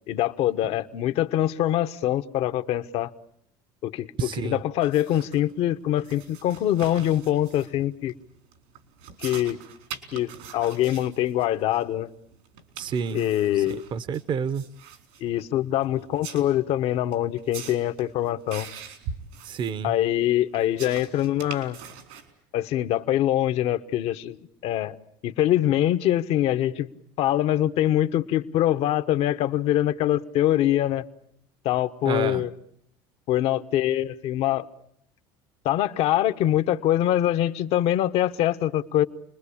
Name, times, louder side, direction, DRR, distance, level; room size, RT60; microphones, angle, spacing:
voice 1, 0.1-3.1 3.8-8.1 9.2-9.6 10.1-12.1 13.1-13.8 15.2-18.7 19.8-21.8 22.5-24.4 24.6-25.0 25.2-26.9 27.2-31.0 31.6-32.5 33.3-34.7 35.6-39.0, left 12 dB, 60° left, 1.2 m, -24 dB
voice 2, 4.2-4.6 12.8-13.2 13.6-14.6 19.4-19.9 32.0-32.4, right 6 dB, 45° right, 1.1 m, -29 dB
sound 1, 4.8-22.3, right 6 dB, 80° right, 4.3 m, -43 dB
29.0 x 21.0 x 8.7 m
supercardioid pair, 100°, 12 cm